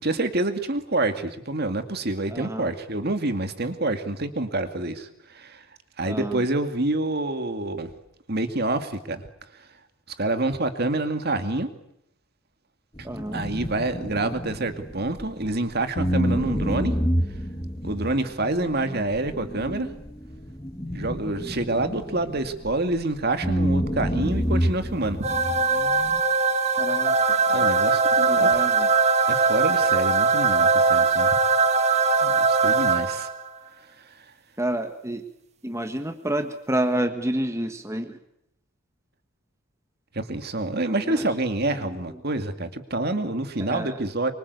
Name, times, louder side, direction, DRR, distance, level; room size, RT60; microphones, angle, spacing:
voice 1, 0.0-5.6 6.0-7.9 8.3-9.2 10.2-11.7 13.3-16.9 17.8-19.9 20.9-25.2 27.5-28.5 29.3-31.3 32.2-33.3 40.1-44.3, right 2 dB, 45° right, 8 dB, 2.3 m, -27 dB
voice 2, 2.3-2.7 6.0-6.4 13.0-13.5 26.8-27.7 28.3-28.9 34.6-35.2 35.6-38.2 40.9-41.3 41.6-42.2 43.6-44.0, right 1 dB, 15° right, 6 dB, 1.5 m, -29 dB
sound 1, 13.0-15.6 16.0-23.0 23.4-26.2, equal, 20° left, 1.7 m, -28 dB
sound 2, 25.2-33.5, right 4 dB, 30° right, 1.9 m, -21 dB
25.0 x 24.5 x 8.3 m, 0.78 s
head